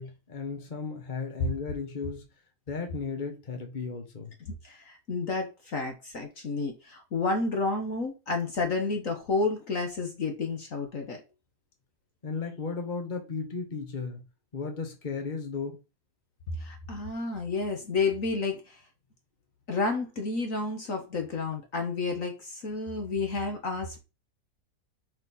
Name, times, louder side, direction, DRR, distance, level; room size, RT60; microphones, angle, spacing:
voice 1, 0.0-2.2 2.7-4.3 12.2-14.2 14.5-15.8, left 5 dB, 30° left, 1.6 m, -35 dB
voice 2, 4.5-11.2 16.6-18.8 19.7-24.0, left 3 dB, 55° left, 1.6 m, -31 dB
5.6 x 4.2 x 5.6 m
omnidirectional pair, 1.8 m